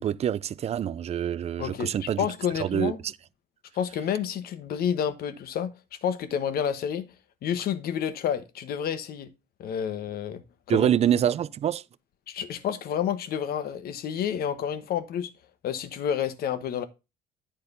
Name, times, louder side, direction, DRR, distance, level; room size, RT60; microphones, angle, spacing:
voice 1, 0.0-2.3 2.6-3.1 10.7-11.8, right 10 dB, 40° right, 0.4 m, -26 dB
voice 2, 1.6-3.0 3.7-5.7 6.0-7.1 7.4-9.3 9.6-10.4 10.7-10.9 12.3-15.3 15.6-16.8, left 8 dB, 65° left, 1.2 m, -29 dB
10.0 x 4.3 x 5.3 m
cardioid pair, 110°, 17 cm